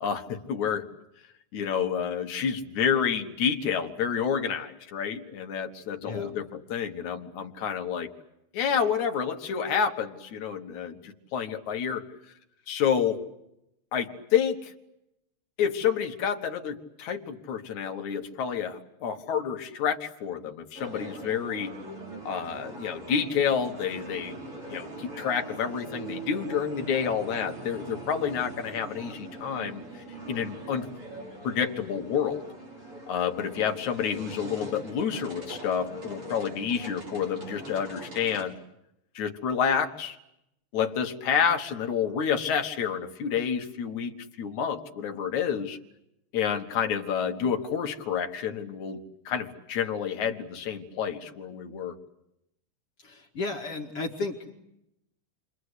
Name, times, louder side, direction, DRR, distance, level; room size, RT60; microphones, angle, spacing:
voice 1, 0.0-0.9 1.5-8.1 8.5-12.1 12.7-13.2 13.9-14.7 15.6-21.7 22.3-24.4 24.7-29.8 30.3-30.9 31.4-32.4 33.1-38.6 39.2-40.2 40.7-45.8 46.3-49.0 49.3-51.9, left 7 dB, 75° left, 5 dB, 2.9 m, -29 dB
voice 2, 6.0-6.3 53.0-54.4, left 3 dB, 50° left, 0 dB, 2.9 m, -33 dB
sound 1, 20.8-38.4, right 2 dB, 45° right, 7.7 m, -42 dB
30.0 x 24.5 x 8.2 m, 0.84 s
omnidirectional pair, 3.4 m